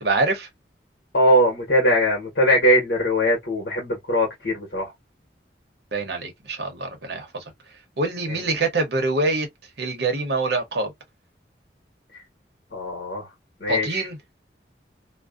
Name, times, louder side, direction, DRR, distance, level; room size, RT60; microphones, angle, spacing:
voice 1, 0.0-0.5 5.9-7.4 8.0-9.5 9.8-10.9 13.7-14.2, right 3 dB, 65° right, 0.9 m, -25 dB
voice 2, 1.1-4.9 8.3-8.4 12.1-12.2 12.7-13.3 13.6-14.1, equal, 65° left, 1.2 m, -21 dB
2.5 x 2.1 x 2.3 m
head